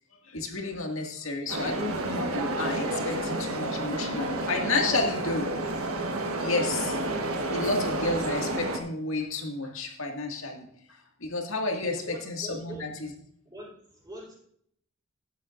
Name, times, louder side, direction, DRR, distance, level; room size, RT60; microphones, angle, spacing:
voice 1, 0.2-5.5 6.4-7.0 7.5-10.7 11.2-12.0 12.3-13.1, left 2 dB, 70° left, 2 dB, 2.1 m, -31 dB
sound 1, 1.5-8.8, right 1 dB, 90° right, 1.3 m, -30 dB
voice 2, 11.8-12.9 13.4-14.3, right 1 dB, 20° right, -4 dB, 4.5 m, -43 dB
13.5 x 10.0 x 2.6 m, 0.67 s
head